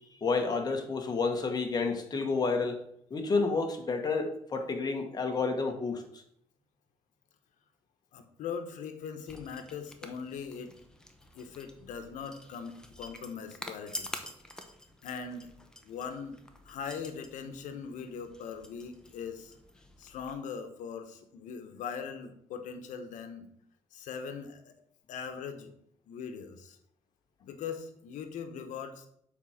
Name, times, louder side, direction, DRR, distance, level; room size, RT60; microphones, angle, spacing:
voice 1, 0.2-2.8 3.1-6.0, left 4 dB, 30° left, 3 dB, 1.4 m, -30 dB
voice 2, 8.1-10.7 11.3-14.1 15.0-15.5 15.8-16.4 16.6-19.6 20.0-23.5 23.9-24.7 25.1-25.7 26.1-26.8 27.4-29.1, left 6 dB, 80° left, 8 dB, 1.1 m, -40 dB
sound 1, 9.3-20.3, left 1 dB, 5° left, 0.9 m, -48 dB
7.5 x 4.5 x 5.8 m, 0.70 s
cardioid pair, 115°, 13 cm